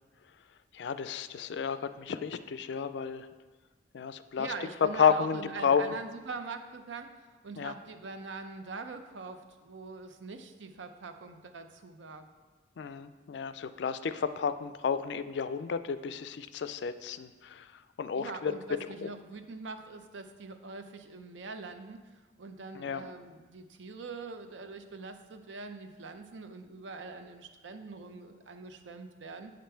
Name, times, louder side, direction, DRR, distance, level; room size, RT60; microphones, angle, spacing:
voice 1, 0.7-3.3 3.9-4.5 4.8-5.8 7.6-7.7 12.8-18.5 18.8-19.1 22.7-23.1, left 6 dB, 70° left, 12 dB, 0.4 m, -31 dB
voice 2, 4.4-12.3 18.1-22.0 22.4-29.5, right 4 dB, 90° right, 8 dB, 0.6 m, -43 dB
7.7 x 5.2 x 4.4 m, 1.3 s
head